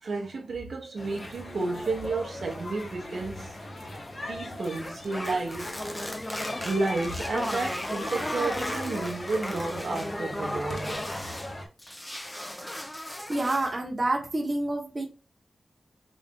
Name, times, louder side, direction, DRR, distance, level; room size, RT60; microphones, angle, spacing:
voice 1, 0.0-3.5 4.3-5.7 6.6-11.4, right 3 dB, 65° right, 0.8 m, -32 dB
sound 1, 1.0-11.7, left 1 dB, 35° left, 0.8 m, -38 dB
sound 2, 4.8-11.5 11.8-13.8, left 1 dB, 10° left, 0.4 m, -36 dB
voice 2, 13.3-15.1, right 2 dB, 30° right, 0.9 m, -28 dB
3.9 x 2.5 x 3.5 m
wide cardioid pair, 135°, 0 cm